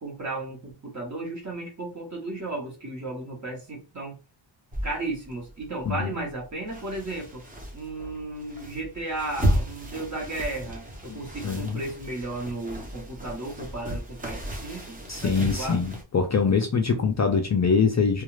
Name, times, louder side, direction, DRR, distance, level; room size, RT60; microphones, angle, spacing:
voice 1, 0.0-4.2 4.8-7.4 7.7-15.8, right 2 dB, 40° right, 1.0 m, -34 dB
sound 1, 4.7-16.0, right 1 dB, 20° right, 0.7 m, -33 dB
voice 2, 11.1-11.8 15.1-18.2, left 5 dB, 40° left, 0.4 m, -24 dB
2.4 x 2.3 x 3.0 m
wide cardioid pair, 175°, 46 cm